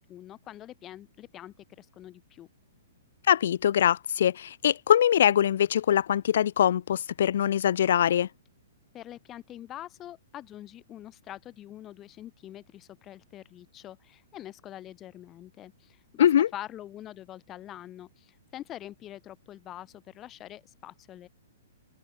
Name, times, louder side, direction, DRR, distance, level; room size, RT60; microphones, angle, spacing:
voice 1, 0.0-2.5 8.9-21.3, left 12 dB, 25° left, 2.8 m, -45 dB
voice 2, 3.3-8.3 16.2-16.5, left 10 dB, 65° left, 0.4 m, -23 dB
hypercardioid pair, 140°, 0 cm